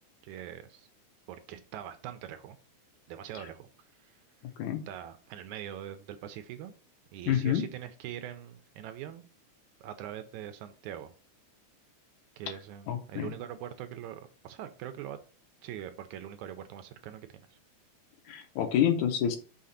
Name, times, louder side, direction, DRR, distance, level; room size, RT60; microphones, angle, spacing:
voice 1, 0.2-0.9 1.3-2.6 3.1-3.7 4.0-4.2 4.9-6.7 7.1-9.2 9.8-11.1 12.4-15.2 15.6-17.6, right 11 dB, 80° right, 10 dB, 1.9 m, -42 dB
voice 2, 7.3-7.6 12.9-13.3 18.3-19.4, left 9 dB, 75° left, 6 dB, 2.1 m, -28 dB
5.8 x 3.8 x 5.6 m, 0.38 s
omnidirectional pair, 3.6 m